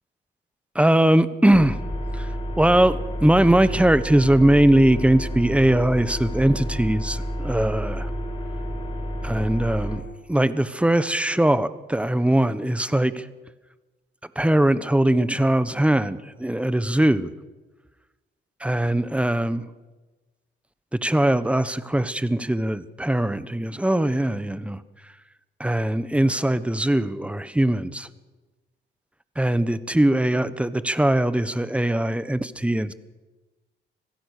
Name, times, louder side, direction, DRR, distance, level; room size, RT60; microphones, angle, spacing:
voice 1, 0.7-1.8 2.2-2.3 2.6-8.1 9.2-10.0 10.3-13.2 14.4-17.3 18.6-19.6 21.0-24.8 25.6-28.1 29.4-32.9, right 1 dB, 5° right, 14 dB, 1.1 m, -21 dB
sound 1, 1.5-10.0, equal, 25° left, 5.6 m, -30 dB
25.5 x 17.0 x 6.7 m, 1.2 s
cardioid pair, 90°, 20 cm